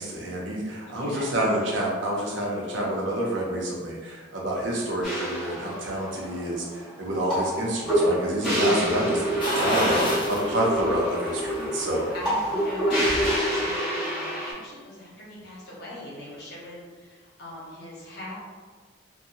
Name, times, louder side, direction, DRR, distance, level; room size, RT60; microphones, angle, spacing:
voice 1, 0.0-9.3 9.5-12.0, right 1 dB, 85° right, -3 dB, 0.6 m, -28 dB
voice 2, 0.9-1.4 10.0-10.6 12.1-18.4, left 1 dB, 55° left, -6 dB, 1.0 m, -40 dB
sound 1, 5.0-14.5, equal, ahead, 1.2 m, -27 dB
sound 2, 9.4-10.5 10.9-11.0 12.5-13.3 13.6-13.7, left 1 dB, 25° left, 0.6 m, -27 dB
2.8 x 2.2 x 2.6 m, 1.5 s
head